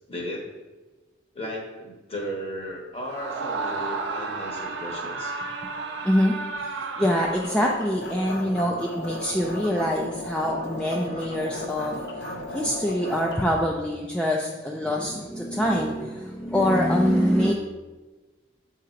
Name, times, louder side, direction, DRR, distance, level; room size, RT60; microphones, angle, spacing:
voice 1, 0.1-0.5 1.3-5.3, equal, 30° left, -1 dB, 1.1 m, -35 dB
Screaming, 3.0-7.9, right 4 dB, 80° right, 0.6 m, -33 dB
voice 2, 6.0-6.4 7.0-12.1 12.5-17.5, equal, 5° left, -2 dB, 0.3 m, -24 dB
sound 1, 7.4-13.4, left 1 dB, 60° left, 0.8 m, -35 dB
7.2 x 2.9 x 4.9 m, 1.2 s
head